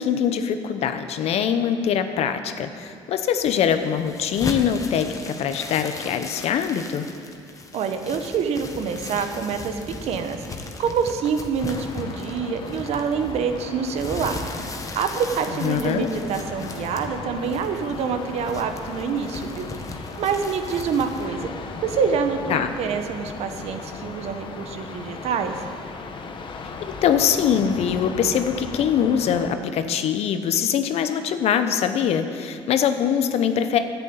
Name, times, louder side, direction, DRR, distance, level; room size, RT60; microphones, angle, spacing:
voice 1, 0.0-7.1 15.6-16.1 22.5-22.7 27.0-33.8, left 8 dB, 60° left, 9 dB, 0.9 m, -23 dB
sound 1, 3.4-21.3, left 3 dB, 30° left, 1.4 m, -37 dB
voice 2, 7.7-14.4 14.9-19.7 20.2-21.5 21.8-25.6, right 6 dB, 65° right, 7 dB, 1.2 m, -26 dB
sound 2, 11.6-29.5, left 4 dB, 45° left, 1.3 m, -37 dB
11.0 x 8.3 x 8.9 m, 2.3 s
supercardioid pair, 80°, 12 cm